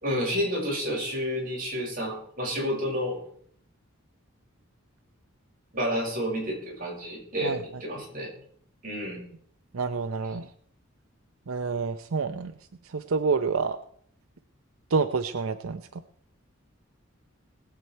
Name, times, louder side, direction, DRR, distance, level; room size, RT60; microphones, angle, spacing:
voice 1, 0.0-3.2 5.7-8.3 8.8-9.2, equal, 45° right, -3 dB, 5.9 m, -30 dB
voice 2, 9.7-10.5 11.5-12.5 12.9-13.8 14.9-15.8, right 4 dB, 90° right, 10 dB, 0.7 m, -28 dB
20.0 x 7.9 x 4.5 m, 0.62 s
head